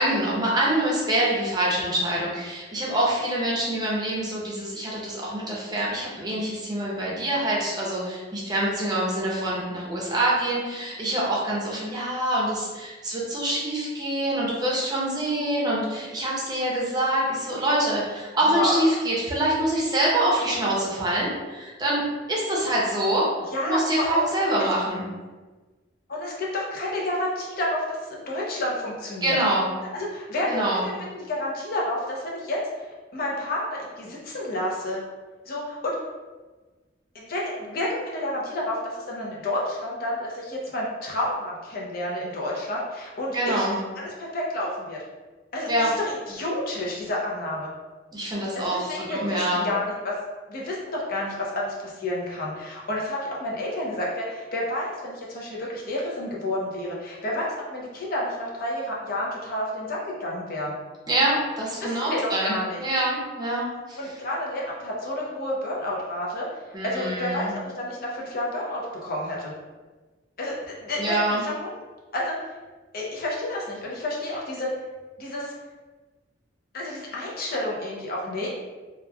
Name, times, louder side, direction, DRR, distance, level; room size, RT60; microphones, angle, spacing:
voice 1, 0.0-22.0 22.3-23.3 23.7-25.1 29.2-29.7 30.5-30.8 43.3-43.8 45.7-45.9 48.1-49.7 61.1-64.0 66.7-67.5 71.0-71.4, right 1 dB, 20° right, -5 dB, 0.6 m, -25 dB
voice 2, 18.5-18.9 23.5-24.3 26.1-29.4 29.9-32.6 33.1-35.0 35.5-35.9 37.1-43.7 44.0-45.0 45.5-47.7 48.5-50.2 50.5-60.7 61.7-62.8 64.0-66.5 66.8-69.5 70.4-71.8 72.1-72.4 72.9-74.7 75.2-75.5 76.7-78.5, left 1 dB, 50° left, -3 dB, 0.6 m, -30 dB
2.9 x 2.3 x 2.2 m, 1.3 s
head